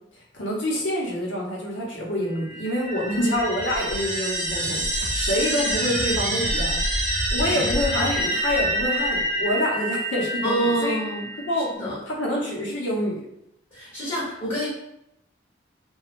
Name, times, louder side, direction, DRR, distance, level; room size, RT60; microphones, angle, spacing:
voice 1, 0.1-11.0 11.4-11.7 12.1-13.3, left 1 dB, 90° left, -3 dB, 0.8 m, -27 dB
sound 1, 2.3-11.6, right 1 dB, 40° right, 0.9 m, -27 dB
voice 2, 10.4-11.2 11.7-12.0 13.7-14.7, right 1 dB, 30° left, -9 dB, 1.1 m, -26 dB
3.0 x 2.3 x 2.4 m, 0.79 s
head